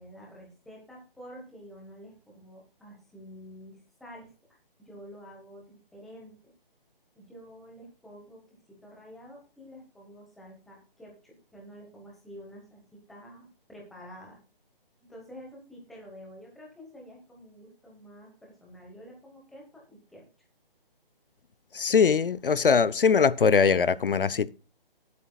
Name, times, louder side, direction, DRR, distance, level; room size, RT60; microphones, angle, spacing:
voice 1, 0.0-4.3 4.8-6.5 7.1-14.4 15.1-20.3, equal, ahead, 1.1 m, -49 dB
voice 2, 21.7-24.5, left 5 dB, 65° left, 0.7 m, -22 dB
18.5 x 8.5 x 2.3 m
hypercardioid pair, 170°, 29 cm